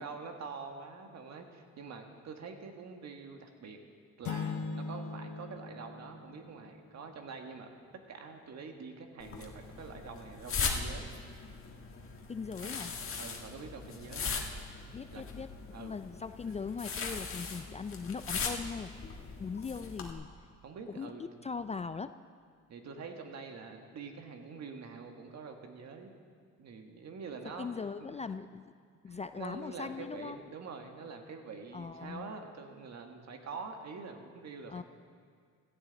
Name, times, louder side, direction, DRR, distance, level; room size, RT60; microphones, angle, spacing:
voice 1, 0.0-3.8 4.2-7.7 8.1-11.1 12.6-12.7 13.2-14.3 15.1-15.2 15.7-15.9 20.6-21.2 22.7-26.1 26.6-27.7 28.0-28.2 29.1-34.8, right 5 dB, 60° right, 4 dB, 1.6 m, -45 dB
sound 1, 4.2-7.0, left 4 dB, 70° left, 1.0 m, -40 dB
sound 2, 9.2-20.1, left 5 dB, 45° left, 1.7 m, -39 dB
voice 2, 12.3-12.9 14.9-15.5 15.8-18.9 19.4-20.3 20.9-21.1 21.4-22.2 27.6-28.7 29.0-30.4 31.7-32.3 34.7-34.8, left 5 dB, 25° left, 11 dB, 0.3 m, -40 dB
16.5 x 14.0 x 4.0 m, 2.1 s
cardioid pair, 90°, 30 cm